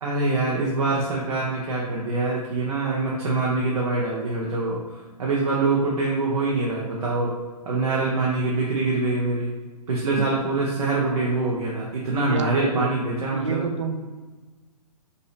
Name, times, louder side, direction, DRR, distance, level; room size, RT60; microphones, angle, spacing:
voice 1, 0.0-4.8 5.2-7.3 7.6-9.5 9.9-13.6, right 3 dB, 65° right, -4 dB, 1.0 m, -24 dB
voice 2, 12.3-13.0 13.3-14.0, right 4 dB, 45° right, 5 dB, 0.6 m, -28 dB
5.4 x 2.8 x 3.3 m, 1.3 s
hypercardioid pair, 170°, 21 cm